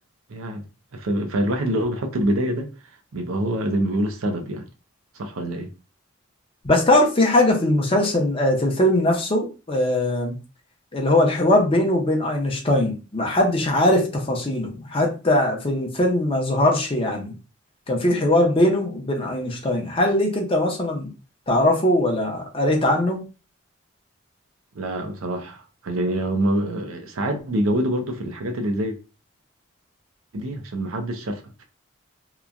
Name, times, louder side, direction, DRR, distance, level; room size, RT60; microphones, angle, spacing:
voice 1, 0.3-0.6 0.9-2.7 3.1-4.7 5.2-5.7 24.7-29.0 30.3-31.6, right 1 dB, 90° right, 0.6 m, -25 dB
voice 2, 6.6-10.4 10.9-17.3 17.9-21.1 21.5-23.2, left 1 dB, 25° left, 0.6 m, -20 dB
2.9 x 2.2 x 2.4 m
head